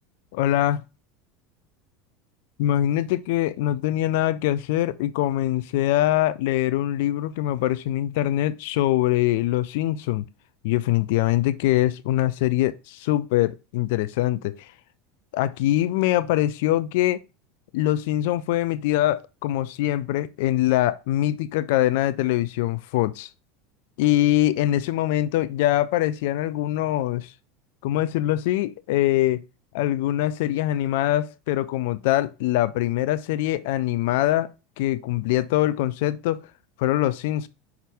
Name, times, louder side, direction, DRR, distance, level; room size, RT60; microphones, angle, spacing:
voice 1, 0.3-0.8 2.6-10.2 10.6-14.7 15.3-17.2 17.7-23.3 24.0-27.3 27.8-29.4 29.7-34.5 34.8-36.4 36.8-37.5, left 14 dB, 60° left, 0.4 m, -23 dB
5.6 x 3.6 x 4.7 m
figure-of-eight pair, 75°, 0 cm